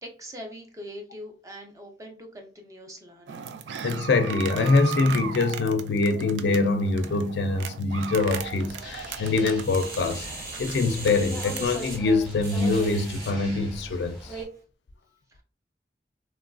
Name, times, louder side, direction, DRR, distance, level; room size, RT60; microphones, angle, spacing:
voice 1, 0.0-3.4 15.3-15.4, equal, 20° right, 0.4 m, -42 dB
sound 1, 3.3-11.7, right 7 dB, 85° right, 0.3 m, -38 dB
voice 2, 3.8-10.3 10.6-14.3, left 3 dB, 70° left, 0.4 m, -24 dB
sound 2, 8.2-14.4, equal, ahead, 1.0 m, -40 dB
sound 3, 9.6-13.4 13.9-14.0, right 2 dB, 55° right, 1.0 m, -39 dB
3.0 x 2.4 x 2.2 m
head